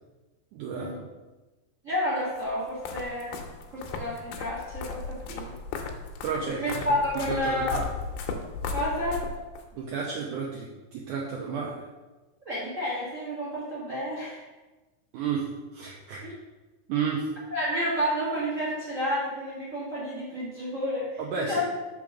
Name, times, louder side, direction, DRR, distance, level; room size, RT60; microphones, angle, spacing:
voice 1, 0.5-1.1 6.2-7.0 7.3-7.9 9.7-11.8 15.1-15.4 15.7-16.2 16.9-17.3 21.2-21.6, right 5 dB, 85° right, -2 dB, 1.8 m, -32 dB
voice 2, 1.8-3.4 3.7-5.5 6.6-7.8 8.7-9.2 12.4-14.4 16.2-16.3 17.5-21.6, equal, 50° right, -7 dB, 0.9 m, -30 dB
sound 1, 2.4-9.7, left 4 dB, 80° left, 2.3 m, -36 dB
5.8 x 3.8 x 6.0 m, 1.2 s
omnidirectional pair, 4.4 m